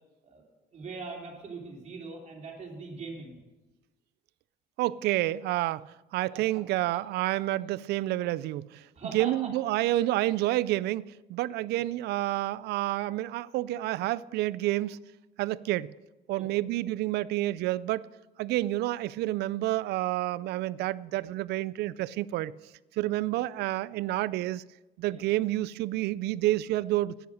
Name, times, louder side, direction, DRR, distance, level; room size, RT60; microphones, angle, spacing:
voice 1, 0.7-3.4 6.3-6.6 6.9-7.0 8.9-9.5 11.7-11.8 16.4-16.5 25.1-25.2, right 4 dB, 45° right, 3.3 m, -41 dB
voice 2, 4.8-8.9 9.1-15.0 15.4-15.9 16.3-18.1 18.4-22.5 23.0-24.6 25.0-27.1, right 16 dB, 75° right, 0.4 m, -29 dB
10.0 x 9.8 x 6.4 m
cardioid pair, 110°, 17 cm